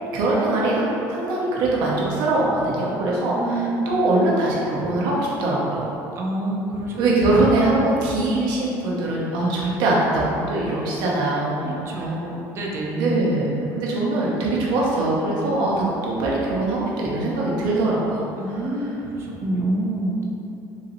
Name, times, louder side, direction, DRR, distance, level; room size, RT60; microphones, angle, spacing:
voice 1, 0.1-6.0 7.0-11.8 13.0-18.3, right 2 dB, 65° right, -5 dB, 0.8 m, -22 dB
voice 2, 3.4-3.9 6.2-7.0 11.6-13.1 18.4-20.2, right 2 dB, 35° right, -2 dB, 0.5 m, -27 dB
4.0 x 2.8 x 2.6 m, 2.8 s
cardioid pair, 155°, 8 cm